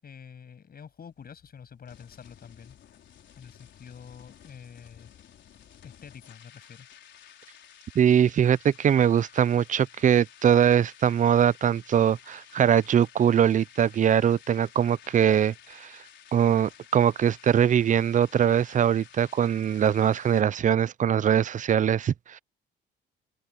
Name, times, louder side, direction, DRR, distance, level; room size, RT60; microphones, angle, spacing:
voice 1, 0.0-2.8 3.4-5.1 5.8-6.9, left 7 dB, 50° left, 7.2 m, -47 dB
sound 1, 0.8-20.4, left 9 dB, 65° left, 4.5 m, -53 dB
voice 2, 8.0-15.9 16.3-22.4, right 9 dB, 40° right, 0.4 m, -22 dB
open air
cardioid pair, 90°, 20 cm